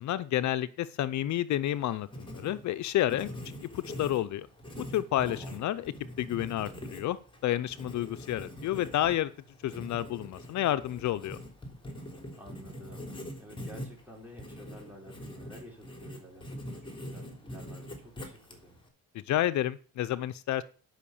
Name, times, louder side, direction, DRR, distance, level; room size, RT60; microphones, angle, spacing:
voice 1, 0.0-3.3 3.6-4.5 4.8-5.9 6.2-9.3 9.6-11.4 19.1-20.6, left 13 dB, 70° left, 13 dB, 0.6 m, -30 dB
Writing, 1.7-18.9, equal, 15° left, 3.5 m, -44 dB
voice 2, 5.3-5.7 12.3-13.1 13.4-18.7, equal, 5° right, -1 dB, 5.2 m, -50 dB
11.5 x 5.8 x 7.0 m, 0.40 s
cardioid pair, 90°, 30 cm